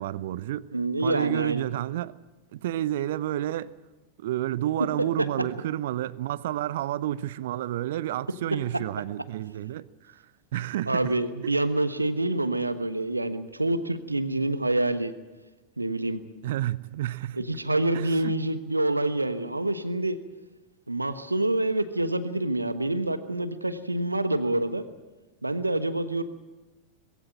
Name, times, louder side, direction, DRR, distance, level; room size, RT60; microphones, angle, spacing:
voice 1, 0.0-0.6 1.0-2.1 2.5-3.7 4.2-10.2 10.5-11.1 11.4-11.5 16.4-17.4 17.9-18.3, right 13 dB, 55° right, 0.7 m, -30 dB
voice 2, 0.7-1.7 5.2-5.3 10.9-15.1 15.8-16.2 17.3-20.2 20.9-24.8 25.4-26.2, right 2 dB, 85° right, 1.2 m, -27 dB
21.0 x 16.0 x 9.0 m
figure-of-eight pair, 90°, 0 cm